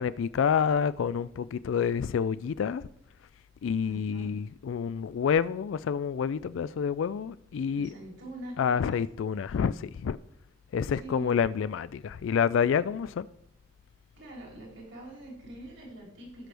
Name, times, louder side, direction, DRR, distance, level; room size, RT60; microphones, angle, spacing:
voice 1, 0.0-2.8 3.6-7.9 8.6-10.2 10.7-13.3, left 7 dB, 70° left, 0.3 m, -28 dB
voice 2, 3.8-4.3 7.7-9.0 10.9-11.3 14.2-16.5, right 1 dB, 65° right, 3.3 m, -44 dB
17.5 x 6.1 x 3.4 m
head